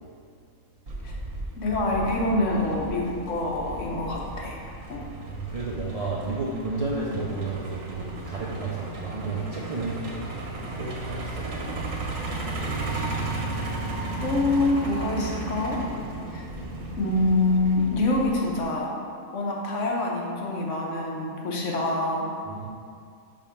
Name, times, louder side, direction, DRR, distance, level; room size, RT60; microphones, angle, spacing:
Truck, 0.9-18.6, right 2 dB, 85° right, 1.2 m, -34 dB
voice 1, 1.5-4.6 4.9-5.1 11.7-11.8 14.2-15.8 16.3-16.4 17.0-18.9 19.3-22.3, left 2 dB, 70° left, -2 dB, 1.3 m, -26 dB
voice 2, 5.0-10.3 10.8-12.0 22.4-22.7, right 3 dB, 45° right, -5 dB, 0.4 m, -32 dB
4.9 x 3.7 x 5.6 m, 2.3 s
omnidirectional pair, 1.3 m